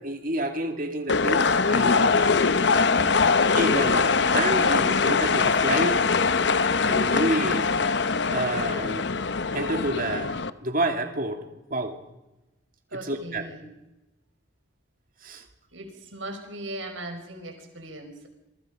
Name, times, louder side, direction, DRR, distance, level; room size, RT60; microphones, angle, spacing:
voice 1, 0.0-2.2 3.5-6.0 6.8-7.8 8.3-9.1 9.5-11.4 11.7-12.0 12.9-13.4 15.2-15.4, right 1 dB, 45° right, 5 dB, 2.7 m, -29 dB
sound 1, 1.1-10.5, left 4 dB, 60° left, 0.8 m, -22 dB
voice 2, 12.9-13.7 15.7-18.3, right 1 dB, 85° right, 5 dB, 5.5 m, -38 dB
27.5 x 23.5 x 5.2 m, 1.0 s
head